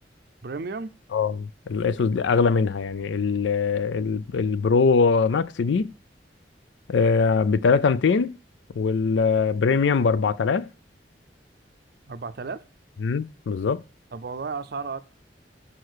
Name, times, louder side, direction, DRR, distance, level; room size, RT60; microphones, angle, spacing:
voice 1, 0.4-0.9 12.1-12.6 14.1-15.0, right 4 dB, 60° right, 0.5 m, -33 dB
voice 2, 1.1-5.9 6.9-8.4 8.8-10.7 13.0-13.8, left 5 dB, 90° left, 0.4 m, -22 dB
6.6 x 4.3 x 6.3 m
head